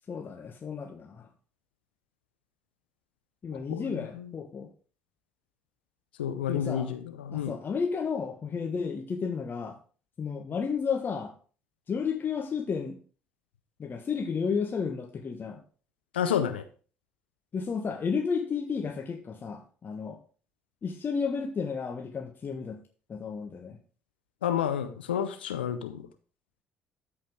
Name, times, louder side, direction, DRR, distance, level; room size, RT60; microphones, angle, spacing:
voice 1, 0.1-1.3 3.4-4.7 6.5-6.9 7.3-9.8 10.2-11.3 11.9-13.0 13.8-15.6 17.5-20.2 20.8-22.8 23.1-23.8, left 5 dB, 35° left, 3 dB, 1.3 m, -32 dB
voice 2, 3.7-4.3 6.2-7.5 16.1-16.6 24.4-26.1, left 9 dB, 80° left, 9 dB, 0.6 m, -30 dB
13.0 x 4.9 x 3.6 m, 0.39 s
figure-of-eight pair, 50°, 6 cm